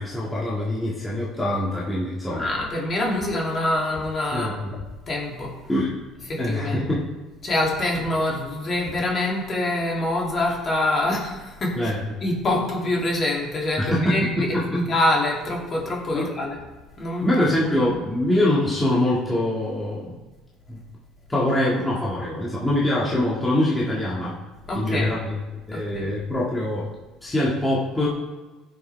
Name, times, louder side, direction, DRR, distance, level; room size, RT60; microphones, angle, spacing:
voice 1, 0.0-2.5 4.3-4.8 5.7-6.0 6.4-7.1 11.8-12.1 13.8-14.8 16.1-16.2 17.2-20.1 20.7-20.8 21.3-24.4 24.7-25.4 25.7-26.9 27.2-28.1, left 1 dB, 10° left, -6 dB, 2.0 m, -24 dB
voice 2, 2.3-4.6 5.1-5.5 6.3-6.8 7.4-11.9 12.2-16.6 17.0-17.3 17.8-17.9 24.7-25.2 25.7-26.1, left 1 dB, 35° left, -2 dB, 2.7 m, -25 dB
16.0 x 6.7 x 3.4 m, 1.2 s
cardioid pair, 130°, 0 cm